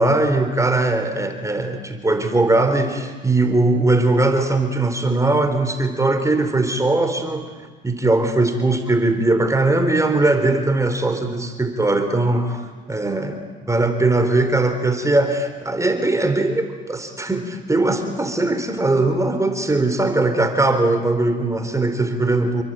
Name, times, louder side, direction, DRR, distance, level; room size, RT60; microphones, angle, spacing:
voice 1, 0.0-7.6 7.8-12.6 12.9-13.4 13.7-22.6, right 2 dB, 15° right, 7 dB, 3.8 m, -20 dB
28.5 x 23.0 x 9.1 m, 1.4 s
supercardioid pair, 80°, 21 cm